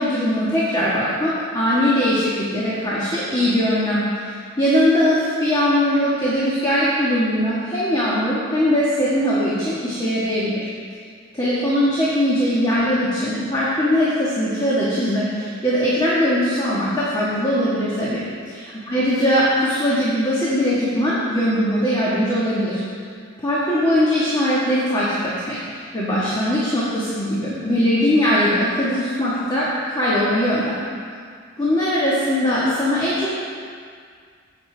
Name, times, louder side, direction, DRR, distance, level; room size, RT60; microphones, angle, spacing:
voice 1, 0.0-10.7 11.3-22.8 23.4-30.8 31.6-33.3, equal, 20° left, -8 dB, 1.5 m, -20 dB
15.5 x 6.7 x 3.3 m, 2.1 s
head